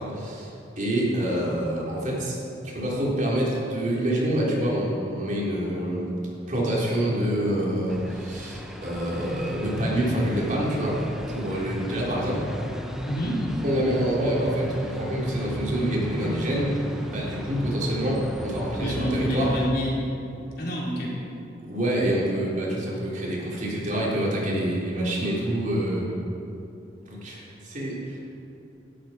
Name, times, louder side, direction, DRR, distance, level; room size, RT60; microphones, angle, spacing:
voice 1, 0.0-2.4 2.6-6.1 6.5-11.0 11.3-12.5 13.6-19.5 21.6-26.1 27.0-28.2, right 1 dB, 45° right, -6 dB, 3.9 m, -27 dB
sound 1, 7.9-19.7, equal, 5° right, 1.1 m, -35 dB
voice 2, 13.0-13.4 18.8-19.9 20.6-21.1, equal, 60° left, -5 dB, 4.1 m, -27 dB
19.0 x 12.0 x 4.5 m, 2.8 s
head